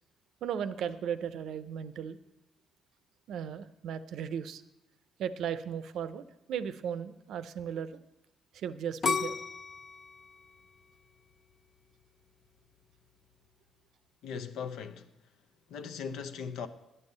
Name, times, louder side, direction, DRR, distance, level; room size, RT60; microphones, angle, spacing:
voice 1, 0.4-2.2 3.3-4.6 5.2-8.0 8.5-9.4, right 8 dB, 75° right, 0.5 m, -36 dB
sound 1, 9.0-11.9 12.4-12.9, left 5 dB, 40° left, 0.6 m, -34 dB
voice 2, 14.2-15.1 15.7-16.7, left 6 dB, 85° left, 0.7 m, -39 dB
9.8 x 5.5 x 7.9 m
cardioid pair, 90°, 0 cm